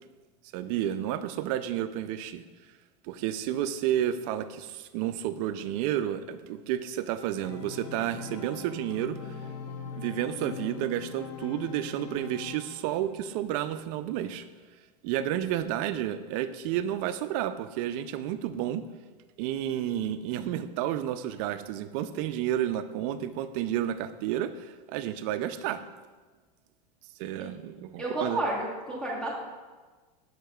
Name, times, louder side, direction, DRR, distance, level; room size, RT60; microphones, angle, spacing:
voice 1, 0.5-2.4 3.0-9.3 10.0-14.5 15.0-18.8 19.4-25.8 27.2-28.4, right 11 dB, 55° right, 11 dB, 0.4 m, -31 dB
Organ, 7.4-13.1, left 5 dB, 65° left, 0.8 m, -41 dB
voice 2, 28.0-29.3, right 1 dB, 5° left, -5 dB, 1.1 m, -31 dB
6.5 x 6.3 x 2.3 m, 1.3 s
supercardioid pair, 120°, 21 cm